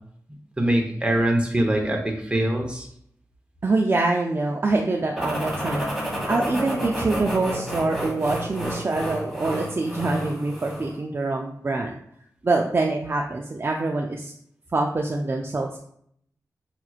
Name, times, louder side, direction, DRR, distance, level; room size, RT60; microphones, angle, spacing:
voice 1, 0.6-2.9, right 1 dB, 15° right, 1 dB, 0.9 m, -23 dB
voice 2, 3.6-12.0 12.4-14.3 14.7-15.8, right 2 dB, 35° right, 0 dB, 0.4 m, -25 dB
sound 1, 5.2-11.0, right 1 dB, 5° left, 1.5 m, -30 dB
5.8 x 2.9 x 2.4 m, 0.68 s
wide cardioid pair, 75°, 7 cm